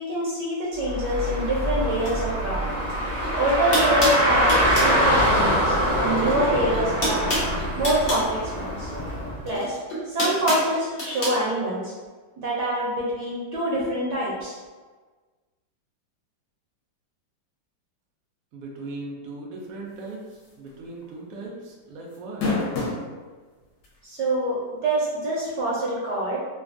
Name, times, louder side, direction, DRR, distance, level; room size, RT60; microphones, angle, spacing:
voice 1, 0.0-2.6 3.3-7.2 7.8-8.9 9.4-9.8 10.0-11.9 12.4-14.6 24.0-26.4, right 1 dB, 70° right, -6 dB, 1.1 m, -25 dB
Car, 0.8-9.4, equal, 50° right, 0.6 m, -24 dB
sound 1, 3.2-3.3 3.7-5.0 6.1-6.5 6.7-8.3 9.4-11.4, equal, 50° left, 0.6 m, -27 dB
voice 2, 18.5-22.6, right 2 dB, 90° right, -2 dB, 0.7 m, -38 dB
sound 2, 20.4-20.7 21.0-21.1 22.1-23.1 23.8-23.9 25.5-25.6, left 3 dB, 65° left, 1.2 m, -26 dB
3.3 x 2.2 x 2.5 m, 1.4 s
omnidirectional pair, 2.1 m